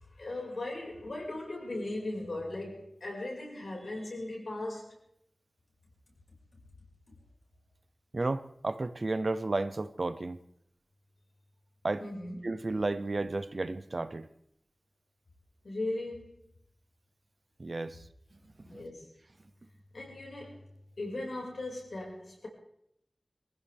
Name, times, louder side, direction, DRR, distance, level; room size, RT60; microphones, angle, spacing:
voice 1, 0.2-5.0 12.0-12.4 15.6-16.4 18.7-19.1 19.9-20.7 21.0-22.5, left 2 dB, 90° left, -2 dB, 5.4 m, -38 dB
voice 2, 8.1-10.4 11.8-12.0 12.4-14.3 17.6-18.0 18.7-18.8, right 2 dB, 55° right, 13 dB, 0.8 m, -32 dB
24.0 x 15.5 x 3.5 m, 0.75 s
wide cardioid pair, 70°, 0 cm